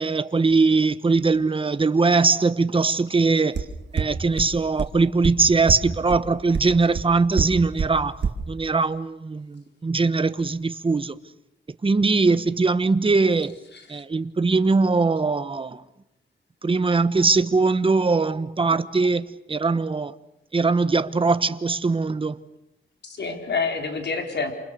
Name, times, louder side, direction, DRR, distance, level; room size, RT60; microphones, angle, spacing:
voice 1, 0.0-3.6 3.9-8.2 8.5-11.2 11.8-13.5 13.9-15.8 16.6-20.1 20.5-22.4, right 4 dB, 25° right, 1.1 m, -21 dB
sound 1, 3.6-3.7 4.0-4.1 4.4-4.5 4.8-4.9 5.2-5.3 5.7-5.8 6.1-6.2 6.5-6.6 6.9-7.0 7.4-7.5 7.8-7.9 8.2-8.3, right 6 dB, 60° right, 2.8 m, -22 dB
voice 2, 23.0-24.5, left 4 dB, 60° left, 4.2 m, -28 dB
28.0 x 28.0 x 6.8 m
wide cardioid pair, 110°, 20 cm